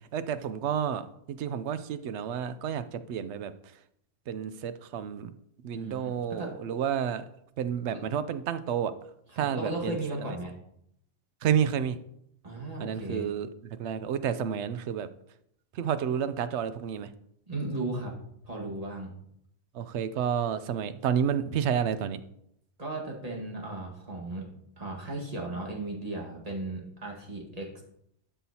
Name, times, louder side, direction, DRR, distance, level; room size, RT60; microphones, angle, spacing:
voice 1, 0.1-1.0 1.4-2.8 3.1-3.5 4.3-5.3 5.6-7.2 7.6-8.9 9.4-10.0 11.4-12.0 12.8-13.5 13.8-15.1 15.8-17.1 19.8-22.2, right 8 dB, 80° right, 12 dB, 0.9 m, -30 dB
voice 2, 5.7-6.5 7.9-8.0 9.3-10.5 12.4-13.3 17.5-18.1 18.4-19.1 22.8-24.5 24.8-27.7, right 2 dB, 35° right, -2 dB, 1.8 m, -36 dB
12.5 x 5.7 x 2.8 m, 0.74 s
omnidirectional pair, 1.2 m